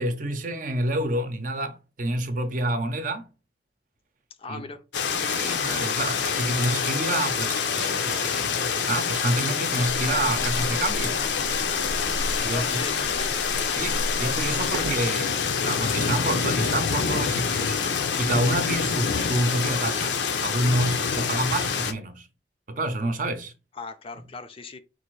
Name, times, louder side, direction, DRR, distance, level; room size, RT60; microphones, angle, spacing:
voice 1, 0.0-3.3 4.5-4.6 5.2-11.2 12.4-12.8 13.7-17.8 18.2-22.3 22.7-23.5, right 1 dB, 50° right, 0.6 m, -28 dB
voice 2, 4.4-4.8 12.5-13.5 23.7-24.8, left 4 dB, 30° left, 0.4 m, -38 dB
sound 1, 4.9-21.9, left 6 dB, 85° left, 0.6 m, -26 dB
sound 2, 9.8-15.1, equal, 85° right, 0.7 m, -34 dB
3.9 x 2.5 x 4.6 m
head